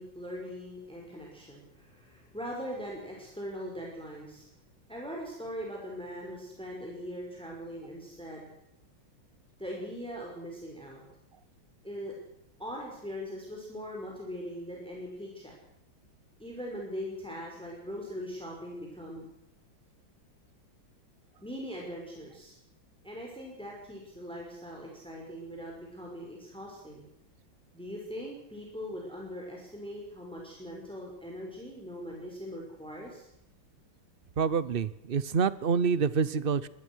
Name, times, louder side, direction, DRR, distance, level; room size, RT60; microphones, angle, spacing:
voice 1, 0.0-4.5 4.9-8.5 9.6-11.0 11.8-12.1 12.6-15.5 16.4-19.3 21.4-22.6 23.0-27.0 27.7-33.3, equal, ahead, -2 dB, 5.7 m, -41 dB
voice 2, 34.4-36.7, right 6 dB, 50° right, 17 dB, 0.7 m, -27 dB
23.5 x 20.0 x 6.4 m, 0.81 s
omnidirectional pair, 2.2 m